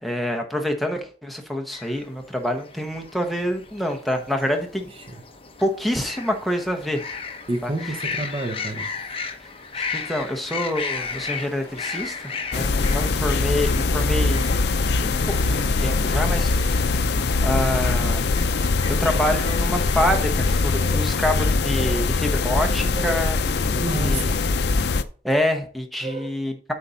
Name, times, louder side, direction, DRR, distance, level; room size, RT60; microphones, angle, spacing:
voice 1, 0.0-4.9 5.6-7.0 7.6-7.7 9.4-14.6 15.0-15.2 15.5-18.2 18.9-24.3 25.2-26.7, left 1 dB, ahead, 1.1 m, -27 dB
sound 1, 1.7-21.0, left 5 dB, 30° left, 0.9 m, -36 dB
voice 2, 7.5-8.9 19.1-19.4 20.0-20.2 20.8-21.1 21.8-22.1 22.9-23.2 23.7-24.5 26.0-26.4, right 2 dB, 30° right, 0.7 m, -31 dB
sound 2, 10.9-20.2, equal, 15° left, 3.8 m, -49 dB
sound 3, 12.5-25.0, left 3 dB, 65° left, 0.5 m, -22 dB
8.4 x 4.3 x 5.1 m
head